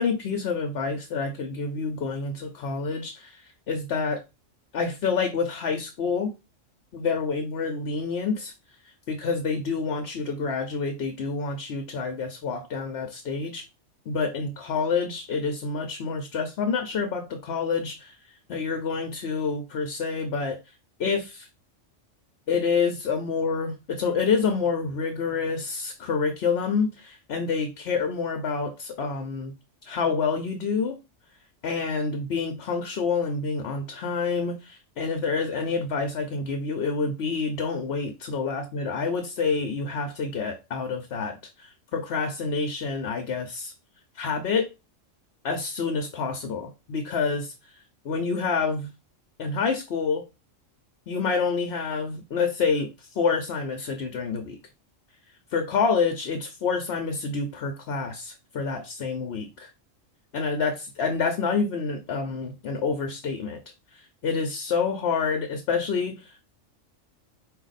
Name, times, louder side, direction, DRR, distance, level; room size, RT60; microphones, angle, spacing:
voice 1, 0.0-4.2 4.7-6.3 6.9-8.5 9.1-13.6 14.1-18.2 18.5-20.6 21.0-21.5 22.5-29.5 29.9-31.0 31.6-43.7 44.1-44.7 45.4-47.7 48.0-48.9 49.4-50.2 51.1-54.6 55.5-59.7 60.3-63.6 63.9-66.5, left 5 dB, 60° left, 0.9 m, -28 dB
5.0 x 2.7 x 3.9 m
omnidirectional pair, 1.3 m